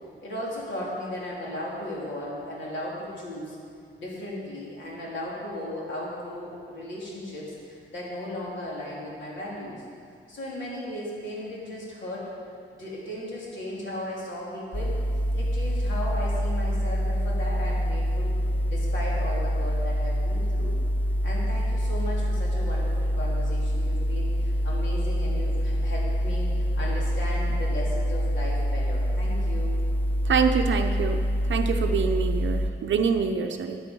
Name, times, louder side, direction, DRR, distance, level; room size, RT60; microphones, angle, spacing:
voice 1, 0.2-3.6 4.0-9.8 10.3-12.3 12.7-14.9 15.3-18.3 18.7-20.8 21.2-29.8, left 1 dB, 60° left, -5 dB, 3.6 m, -36 dB
sound 1, 14.7-32.7, equal, 10° left, 0.5 m, -26 dB
voice 2, 30.2-31.2 31.5-33.8, right 6 dB, 65° right, 6 dB, 0.7 m, -25 dB
14.0 x 9.2 x 5.5 m, 2.3 s
wide cardioid pair, 175°, 21 cm